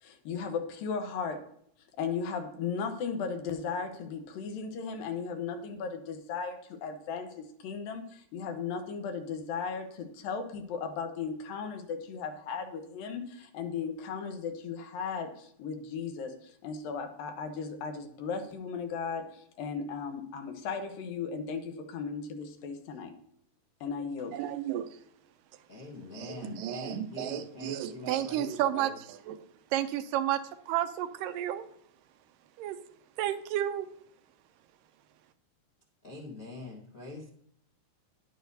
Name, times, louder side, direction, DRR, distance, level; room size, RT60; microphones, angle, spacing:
voice 1, 0.0-1.4 2.0-23.1 23.8-24.3, left 5 dB, 80° left, 6 dB, 2.8 m, -36 dB
voice 2, 24.3-24.9 26.1-31.6 32.6-32.8 33.2-33.9, right 12 dB, 80° right, 10 dB, 2.2 m, -32 dB
voice 3, 25.7-29.0 36.0-37.3, left 3 dB, 60° left, -3 dB, 0.8 m, -44 dB
11.0 x 10.5 x 2.7 m, 0.68 s
omnidirectional pair, 4.0 m